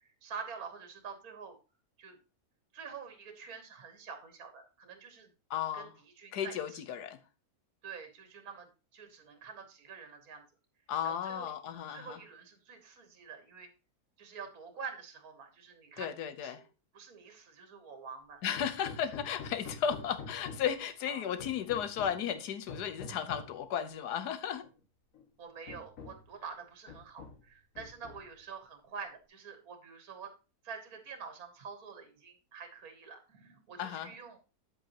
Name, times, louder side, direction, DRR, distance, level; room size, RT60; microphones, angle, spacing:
voice 1, 0.2-1.6 2.0-2.2 2.7-5.3 5.7-5.9 6.2-6.8 7.8-10.4 11.0-11.5 11.9-13.7 14.2-16.1 16.4-16.7 16.9-18.4 21.1-21.2 25.4-30.3 30.6-34.4, right 6 dB, 65° right, 1.7 m, -47 dB
voice 2, 5.5-5.9 6.3-7.2 10.9-12.2 16.0-16.6 18.4-24.6 33.8-34.1, left 9 dB, 90° left, 1.4 m, -35 dB
Hammer, 18.6-20.8 21.4-22.3 22.7-23.6 24.6-24.7 25.1-25.3 25.7-26.3 26.9-27.5 27.8-28.4, left 4 dB, 60° left, 1.5 m, -47 dB
9.6 x 7.9 x 2.9 m
omnidirectional pair, 1.7 m